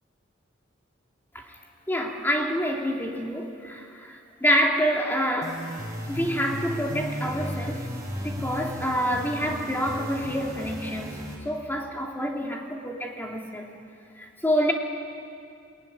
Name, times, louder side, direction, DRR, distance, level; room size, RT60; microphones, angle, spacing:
voice 1, 1.9-5.7 6.1-11.2 11.4-13.7 14.1-14.7, equal, 10° left, 0 dB, 2.6 m, -27 dB
sound 1, 5.4-11.4, equal, 20° right, 4.8 m, -35 dB
20.5 x 20.5 x 9.9 m, 2.4 s
head